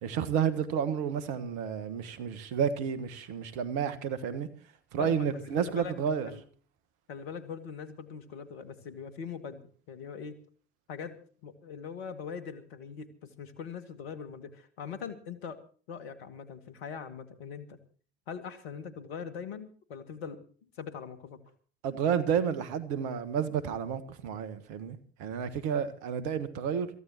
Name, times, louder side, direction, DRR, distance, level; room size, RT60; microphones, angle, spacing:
voice 1, 0.0-4.5 4.9-6.3 21.8-26.9, right 7 dB, 65° right, 1.8 m, -31 dB
voice 2, 5.0-5.9 6.3-6.4 7.1-10.4 10.9-11.2 11.4-15.6 15.9-17.8 18.3-20.4 20.8-21.4, left 6 dB, 75° left, 2.1 m, -42 dB
26.5 x 15.0 x 2.9 m
figure-of-eight pair, 55°, 31 cm